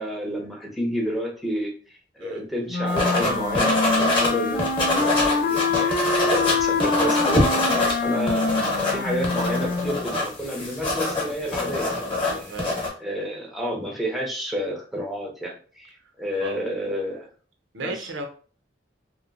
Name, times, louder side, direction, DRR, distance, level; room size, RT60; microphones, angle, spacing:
voice 1, 0.0-1.7 2.1-17.3 17.8-18.1, equal, ahead, -1 dB, 0.5 m, -30 dB
sound 1, 2.7-10.0, left 3 dB, 50° left, 0.4 m, -25 dB
sound 2, 2.9-4.3 4.6-7.9 8.2-12.9, left 2 dB, 25° left, 0.9 m, -24 dB
voice 2, 12.3-12.7 16.4-16.6 17.7-18.3, right 2 dB, 75° right, 4 dB, 0.5 m, -34 dB
2.9 x 2.1 x 2.4 m, 0.40 s
head